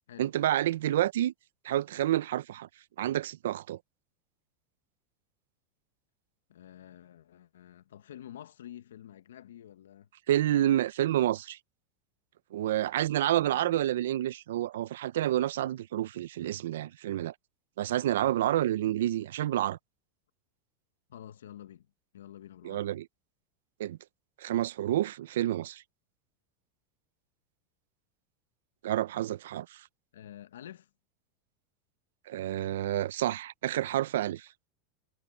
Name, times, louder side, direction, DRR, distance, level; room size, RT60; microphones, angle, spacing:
voice 1, 0.2-1.3 1.6-2.7 3.0-3.8 10.3-11.6 12.5-17.3 17.8-19.8 22.6-23.1 23.8-24.0 24.4-25.8 28.8-29.8 32.3-34.5, right 13 dB, 80° right, 0.6 m, -29 dB
voice 2, 6.5-10.1 13.3-13.7 21.1-21.9 22.1-22.9 30.1-30.9, left 11 dB, 85° left, 1.2 m, -49 dB
hypercardioid pair, 105°, 0 cm